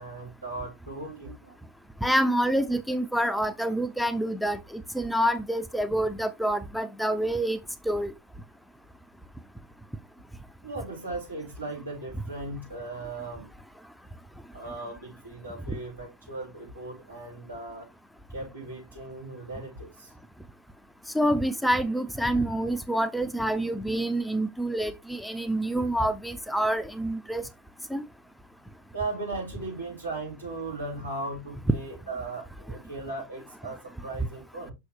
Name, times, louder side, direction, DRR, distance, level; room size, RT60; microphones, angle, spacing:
voice 1, 0.0-1.6 10.6-13.5 14.5-17.9 18.3-20.1 28.9-34.7, right 2 dB, 80° right, 5.2 m, -37 dB
voice 2, 2.0-7.6 7.9-8.1 15.7-15.8 21.1-27.4 27.9-28.0, right 1 dB, ahead, 0.6 m, -27 dB
6.2 x 6.1 x 3.4 m
figure-of-eight pair, 90°, 0 cm